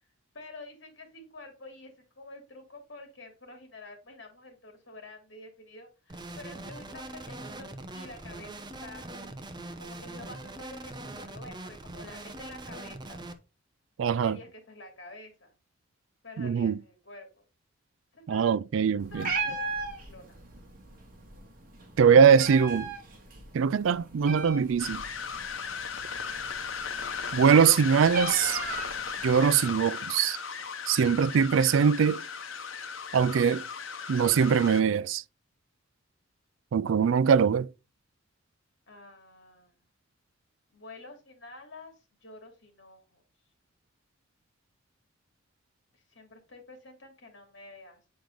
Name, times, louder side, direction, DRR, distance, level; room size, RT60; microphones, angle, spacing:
voice 1, 0.3-9.0 9.8-13.2 14.0-15.6 16.2-17.4 18.1-18.5 18.9-19.7 20.1-20.4 38.9-39.8 40.7-43.2 45.9-48.0, left 2 dB, 65° left, 2.8 m, -48 dB
sound 1, 6.1-13.3, right 2 dB, 20° right, 0.8 m, -42 dB
voice 2, 14.0-14.4 16.4-16.7 18.3-19.3 22.0-22.9 23.5-25.0 27.3-28.6 29.2-30.4 30.9-32.2 33.1-33.6 34.1-35.2 36.7-37.7, right 6 dB, 80° right, 0.4 m, -22 dB
Meow, 19.0-29.4, right 4 dB, 45° right, 1.9 m, -38 dB
sound 2, 24.8-34.8, left 6 dB, 90° left, 1.0 m, -36 dB
8.7 x 4.6 x 3.8 m
head